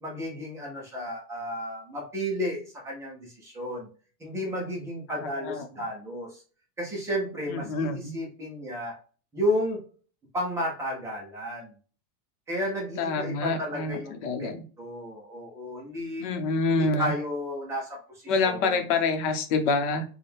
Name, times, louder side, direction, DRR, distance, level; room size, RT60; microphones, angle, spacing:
voice 1, 0.0-3.9 4.2-6.4 6.8-9.0 9.3-9.8 10.3-11.7 12.5-14.1 14.4-14.5 14.8-16.3 16.7-18.8, equal, 5° right, -2 dB, 0.4 m, -32 dB
voice 2, 5.1-5.7 7.5-8.1 13.0-14.7 16.2-17.1 18.3-20.0, left 3 dB, 50° left, 6 dB, 0.9 m, -27 dB
4.2 x 2.3 x 3.4 m, 0.39 s
supercardioid pair, 175°, 47 cm